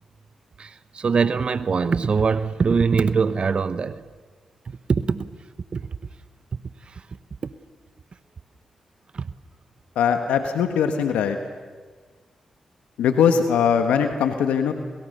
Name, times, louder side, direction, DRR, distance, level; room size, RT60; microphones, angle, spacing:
voice 1, 0.6-4.0 4.9-5.3 5.7-5.8 6.9-7.0 7.4-7.5 9.1-9.3, right 5 dB, 55° right, 14 dB, 1.0 m, -22 dB
voice 2, 9.9-11.4 13.0-14.7, left 7 dB, 85° left, 7 dB, 1.5 m, -21 dB
30.0 x 28.0 x 6.7 m, 1.4 s
supercardioid pair, 40°, 2 cm